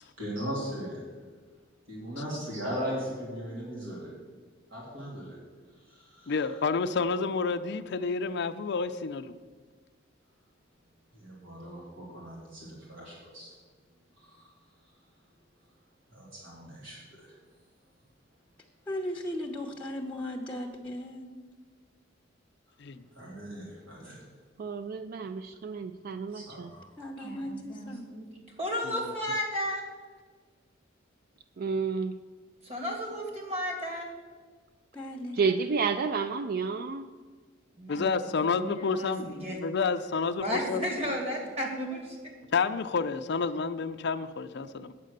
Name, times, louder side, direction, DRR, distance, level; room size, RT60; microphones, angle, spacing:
voice 1, 0.2-1.0 1.9-4.1 4.7-5.4 5.9-6.4 11.1-13.5 14.2-14.5 16.1-17.3 23.1-24.2 26.3-27.5, equal, 75° right, -4 dB, 3.2 m, -39 dB
voice 2, 6.3-9.3 22.8-23.0 28.9-29.1 37.9-40.9 42.5-44.9, left 4 dB, 60° left, 7 dB, 0.5 m, -30 dB
voice 3, 18.9-21.3 27.0-28.0 34.9-35.4, left 1 dB, 5° left, -1 dB, 0.9 m, -36 dB
voice 4, 24.6-26.7 31.6-32.2 35.3-37.1, right 5 dB, 50° right, 11 dB, 0.4 m, -30 dB
voice 5, 27.2-28.3 28.6-29.8 32.6-34.1 37.8-38.2 38.4-39.6 40.4-42.2, equal, 35° right, 0 dB, 2.5 m, -34 dB
9.2 x 7.6 x 6.5 m, 1.5 s
head